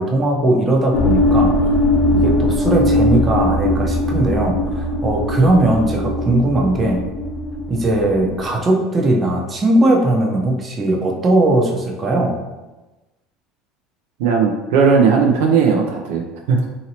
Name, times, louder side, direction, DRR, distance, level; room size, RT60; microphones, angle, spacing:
voice 1, 0.0-1.5 2.1-7.0 7.7-12.4, right 1 dB, 30° right, 1 dB, 0.6 m, -18 dB
sound 1, 0.9-8.5, left 1 dB, 55° left, 0.7 m, -19 dB
voice 2, 14.2-16.7, right 5 dB, 80° right, 1 dB, 0.4 m, -16 dB
2.9 x 2.8 x 2.8 m, 1.1 s
supercardioid pair, 95°, 0 cm